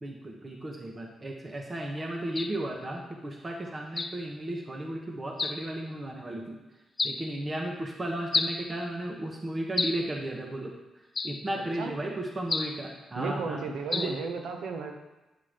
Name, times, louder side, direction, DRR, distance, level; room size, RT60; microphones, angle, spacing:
voice 1, 0.0-6.6 7.0-10.7 11.2-13.6 13.9-14.1, right 1 dB, 30° right, 1 dB, 1.1 m, -34 dB
sound 1, 2.4-2.6 4.0-4.2 5.4-5.7 7.0-7.2 8.3-8.6 9.8-10.1 11.2-11.5 12.5-12.8 13.9-14.2, left 3 dB, 30° left, 0.6 m, -30 dB
voice 2, 13.2-14.9, right 4 dB, 80° right, 4 dB, 1.1 m, -34 dB
9.4 x 5.8 x 5.1 m, 1.1 s
cardioid pair, 90°, 0 cm